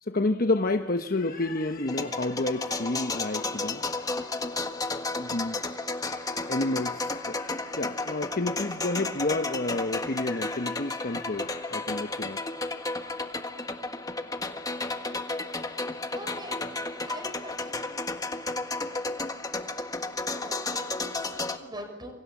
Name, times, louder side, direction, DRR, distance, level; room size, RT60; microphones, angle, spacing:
voice 1, 0.0-4.4 5.2-12.6, left 2 dB, 50° left, 6 dB, 1.1 m, -30 dB
sound 1, 1.9-21.6, left 2 dB, 20° left, 1.6 m, -33 dB
voice 2, 16.1-16.6 17.1-18.0 20.3-22.1, right 1 dB, 25° right, 6 dB, 6.3 m, -43 dB
27.5 x 24.5 x 7.2 m, 1.1 s
head